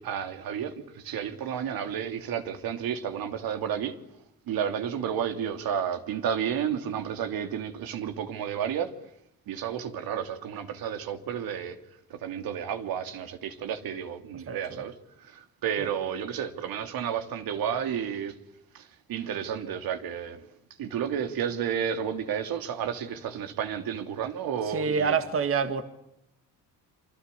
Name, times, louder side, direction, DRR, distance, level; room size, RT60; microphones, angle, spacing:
voice 1, 0.0-4.0 4.5-8.9 9.5-11.8 12.1-18.4 18.7-20.4 20.8-25.2, right 8 dB, 70° right, 3.0 m, -31 dB
voice 2, 14.5-14.8 15.8-15.9 24.7-25.8, right 5 dB, 35° right, 1.9 m, -27 dB
27.5 x 25.5 x 8.5 m
cardioid pair, 120°, 36 cm